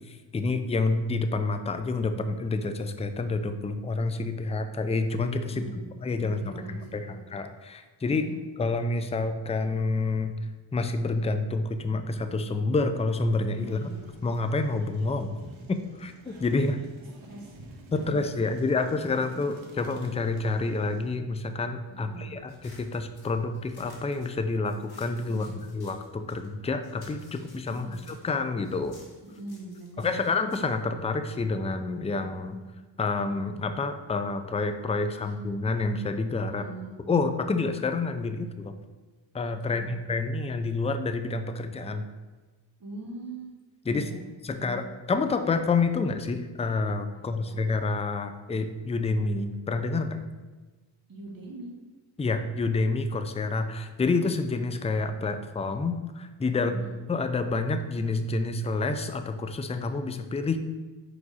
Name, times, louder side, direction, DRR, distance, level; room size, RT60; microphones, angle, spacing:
voice 1, 0.1-5.7 6.0-6.4 6.9-8.2 8.6-10.3 10.7-13.8 14.2-15.3 15.7-16.8 17.9-25.5 25.7-29.0 30.0-32.6 33.0-36.6 37.1-38.8 39.3-42.1 43.9-44.1 44.4-44.8 45.1-50.2 52.2-60.6, left 3 dB, 15° left, 9 dB, 0.3 m, -28 dB
voice 2, 6.2-7.2 8.0-8.3 13.7-13.9 15.3-15.5 17.2-18.0 19.3-19.4 21.9-22.3 25.3-25.5 27.7-28.0 29.2-30.2 35.2-35.3 36.4-37.0 39.6-39.9 42.8-43.5 43.8-44.2 44.5-44.8 47.1-47.6 51.1-51.7 56.5-56.9, right 2 dB, 45° right, -2 dB, 1.6 m, -42 dB
sound 1, 13.6-21.1, right 2 dB, 80° right, 1.0 m, -52 dB
sound 2, 22.5-26.5 26.8-31.6, left 2 dB, 55° left, 1.6 m, -56 dB
4.9 x 4.8 x 4.1 m, 1.3 s
cardioid pair, 85°, 47 cm